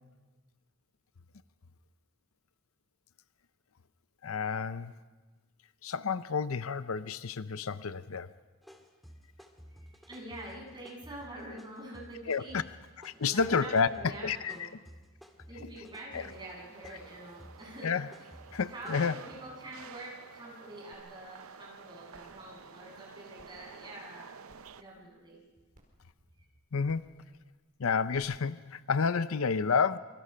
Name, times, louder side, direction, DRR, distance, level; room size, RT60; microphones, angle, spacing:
voice 1, 4.2-4.9 5.8-8.3 12.3-12.6 13.0-14.7 16.1-16.3 17.8-18.1 18.5-19.2 26.7-27.2 27.8-30.0, left 5 dB, 65° left, 14 dB, 0.6 m, -30 dB
sound 1, 8.6-19.0, equal, ahead, 2.0 m, -54 dB
voice 2, 9.7-12.6 13.1-14.6 15.5-17.9 18.2-18.3 18.7-24.3 24.8-25.4, right 1 dB, 20° right, -3 dB, 7.5 m, -46 dB
sound 2, 16.1-24.8, right 6 dB, 65° right, 0.7 m, -51 dB
sound 3, 20.9-21.0 21.5-21.6 22.1-22.4 23.4-23.5 24.5-24.8 25.7-25.8 26.8-27.1 28.1-28.2, equal, 40° right, 4.9 m, -60 dB
27.0 x 25.0 x 5.7 m, 1.3 s
head